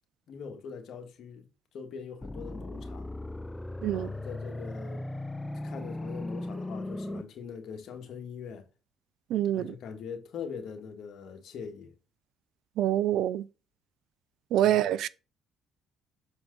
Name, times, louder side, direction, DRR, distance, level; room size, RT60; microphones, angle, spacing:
voice 1, 0.3-1.5 1.7-3.1 3.9-5.1 5.6-8.6 9.5-11.9 14.6-14.7, left 6 dB, 65° left, 1.7 m, -42 dB
sound 1, 2.2-7.2, left 1 dB, 10° left, 0.5 m, -37 dB
voice 2, 9.3-9.7 12.8-13.4 14.5-15.1, right 12 dB, 70° right, 0.4 m, -26 dB
6.9 x 4.6 x 3.9 m
supercardioid pair, 80°, 0 cm